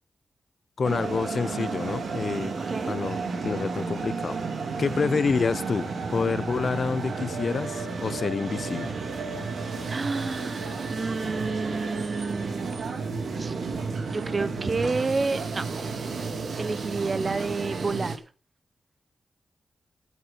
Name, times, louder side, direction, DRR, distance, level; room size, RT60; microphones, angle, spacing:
voice 1, 0.8-2.6 2.9-4.4 4.8-8.9, left 5 dB, 65° left, 0.6 m, -28 dB
sound 1, 0.8-18.2, right 4 dB, 80° right, 2.7 m, -32 dB
voice 2, 4.9-5.2 9.9-13.1 13.3-13.6 14.1-15.7 16.6-18.2, right 3 dB, 45° right, 0.8 m, -30 dB
9.5 x 9.2 x 7.9 m
cardioid pair, 50°, 0 cm